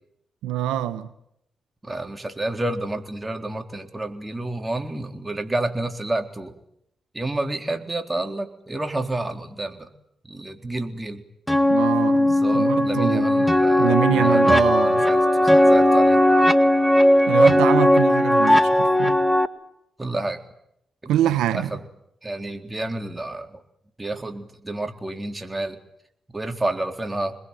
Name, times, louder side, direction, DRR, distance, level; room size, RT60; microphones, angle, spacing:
voice 1, 0.4-1.1 11.7-13.5 13.8-15.0 17.3-19.2 21.1-21.7, right 12 dB, 85° right, 11 dB, 1.2 m, -25 dB
voice 2, 1.8-6.5 7.1-9.9 10.2-11.2 12.4-16.2 20.0-20.4 21.0-21.8 22.2-23.6 24.0-25.8 26.3-27.4, right 2 dB, 25° right, 5 dB, 3.9 m, -30 dB
sound 1, 11.5-19.5, left 1 dB, 5° left, 1.9 m, -17 dB
27.0 x 21.0 x 9.2 m, 0.77 s
hypercardioid pair, 40°, 0 cm